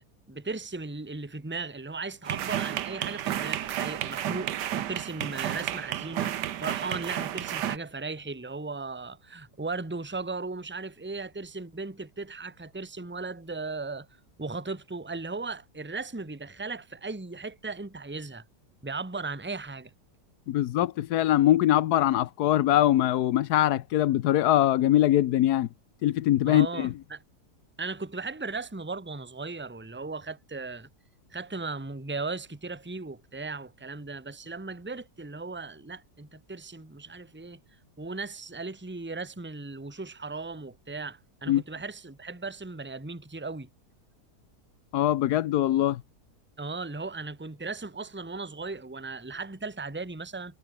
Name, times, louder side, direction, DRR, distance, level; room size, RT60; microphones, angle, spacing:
voice 1, 0.0-4.5 4.8-14.1 14.4-18.4 18.8-19.9 26.4-27.2 27.8-30.9 31.3-37.6 38.0-43.7 46.6-50.5, right 3 dB, 5° right, 1.5 m, -37 dB
sound 1, 2.3-7.8, right 11 dB, 90° right, 1.5 m, -32 dB
voice 2, 20.5-25.7 26.0-26.9 41.5-41.6 44.9-46.0, left 13 dB, 75° left, 1.2 m, -22 dB
omnidirectional pair, 1.8 m